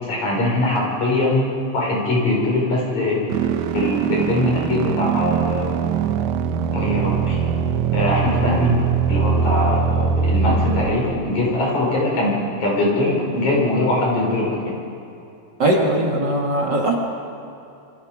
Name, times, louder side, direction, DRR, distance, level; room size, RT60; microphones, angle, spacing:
voice 1, 0.0-3.3 3.7-5.7 6.7-7.4 7.9-8.7 9.1-14.7, left 1 dB, 75° left, -3 dB, 7.2 m, -22 dB
sound 1, 3.3-10.9, right 6 dB, 85° right, 2.3 m, -21 dB
voice 2, 15.6-17.0, right 1 dB, 40° right, -1 dB, 2.6 m, -19 dB
28.0 x 24.5 x 5.2 m, 2.7 s
omnidirectional pair, 3.3 m